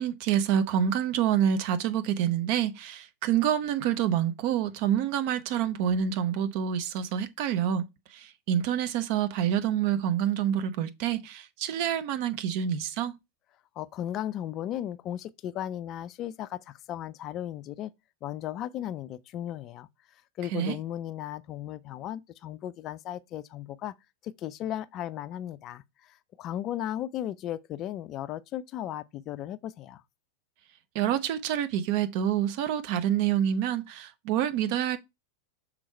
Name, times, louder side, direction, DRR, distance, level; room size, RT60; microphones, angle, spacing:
voice 1, 0.0-7.8 8.1-13.1 20.5-20.8 30.9-35.0, right 9 dB, 45° right, 0.8 m, -27 dB
voice 2, 13.8-17.9 18.2-19.9 20.4-23.9 24.2-30.0, left 11 dB, 35° left, 0.4 m, -36 dB
6.1 x 3.9 x 4.4 m
figure-of-eight pair, 90°, 0 cm